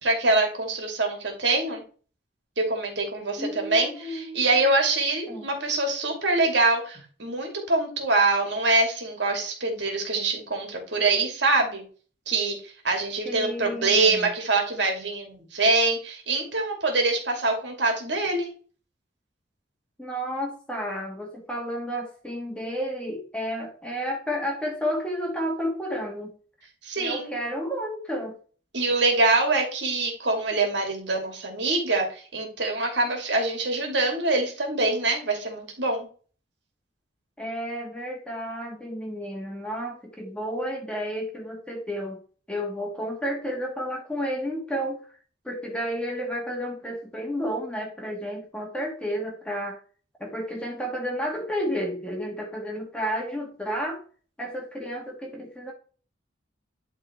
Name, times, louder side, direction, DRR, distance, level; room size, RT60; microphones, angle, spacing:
voice 1, 0.0-1.8 2.6-11.8 12.3-18.5 26.8-27.3 28.7-36.1, right 3 dB, 65° right, 2 dB, 2.6 m, -24 dB
voice 2, 3.4-4.6 5.3-5.5 13.2-14.3 20.0-26.3 27.0-28.4 37.4-42.2 42.5-45.0 45.4-49.8 50.2-54.0 54.4-55.7, equal, 5° left, 1 dB, 1.6 m, -31 dB
11.0 x 3.9 x 4.4 m, 0.40 s
head